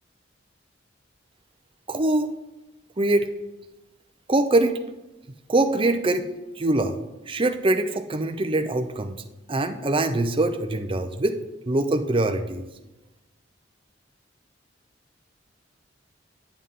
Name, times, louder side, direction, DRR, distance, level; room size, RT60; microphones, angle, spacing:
voice 1, 1.9-2.3 3.0-3.4 4.3-4.7 5.5-6.2 6.6-6.9 7.3-9.1 9.5-11.4 11.7-12.6, right 2 dB, 30° right, 7 dB, 0.6 m, -23 dB
9.9 x 7.6 x 3.7 m, 1.0 s
head